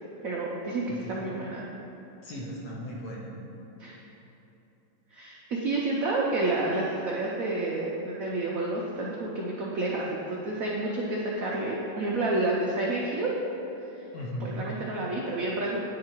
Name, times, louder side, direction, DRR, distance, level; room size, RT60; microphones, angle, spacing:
voice 1, 0.2-1.6 3.8-4.0 5.1-13.3 14.4-15.8, right 2 dB, 90° right, -3 dB, 0.7 m, -29 dB
voice 2, 0.9-1.3 2.2-3.3 14.1-14.7, equal, 55° left, -4 dB, 1.3 m, -37 dB
9.5 x 3.8 x 4.4 m, 3.0 s
omnidirectional pair, 2.3 m